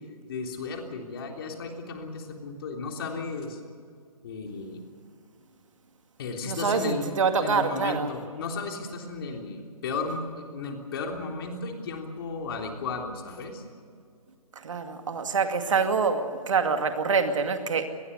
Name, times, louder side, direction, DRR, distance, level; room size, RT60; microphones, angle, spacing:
voice 1, 0.3-3.6 4.2-4.9 6.2-7.1 7.4-13.6, left 4 dB, 40° left, 3.4 m, -34 dB
voice 2, 6.5-8.1 14.5-17.9, right 5 dB, 55° right, 2.3 m, -26 dB
25.0 x 20.0 x 6.8 m
figure-of-eight pair, 150°, 19 cm